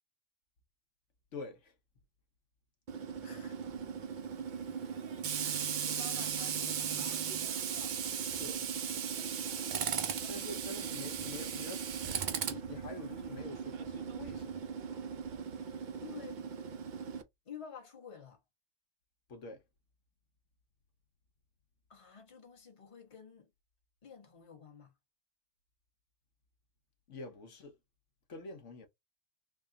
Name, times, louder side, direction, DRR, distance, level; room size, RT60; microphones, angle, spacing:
voice 1, 1.3-1.7 8.2-8.6 10.3-11.8 12.5-14.6 19.3-19.6 27.1-27.8 28.3-28.9, left 2 dB, 70° left, 1.2 m, -46 dB
Tools, 2.9-17.2, right 7 dB, 60° right, 0.5 m, -37 dB
voice 2, 3.2-3.6 4.6-5.0 5.4-7.3 9.7-10.3 15.7-16.4 17.4-18.4 21.9-23.5 24.0-24.9, left 6 dB, 25° left, 1.1 m, -52 dB
3.5 x 2.2 x 3.7 m
omnidirectional pair, 1.3 m